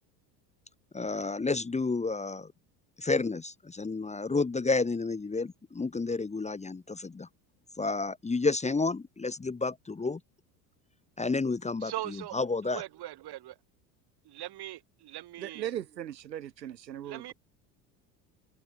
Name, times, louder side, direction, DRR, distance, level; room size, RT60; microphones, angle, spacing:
voice 1, 0.9-2.5 3.0-7.3 7.8-10.2 11.2-11.9 12.3-12.8, left 3 dB, 15° left, 1.2 m, -30 dB
voice 2, 11.8-13.6 14.2-15.7 17.0-17.3, right 15 dB, 50° right, 4.1 m, -41 dB
voice 3, 15.4-17.3, right 11 dB, 85° right, 4.1 m, -38 dB
hypercardioid pair, 75°, 49 cm